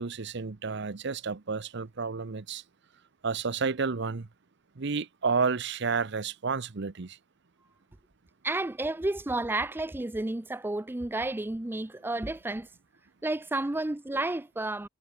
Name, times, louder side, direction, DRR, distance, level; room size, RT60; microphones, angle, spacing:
voice 1, 0.0-2.6 3.2-4.3 4.8-7.2, right 5 dB, 60° right, 0.8 m, -31 dB
voice 2, 8.4-12.7 13.2-14.9, right 2 dB, 10° right, 0.4 m, -31 dB
head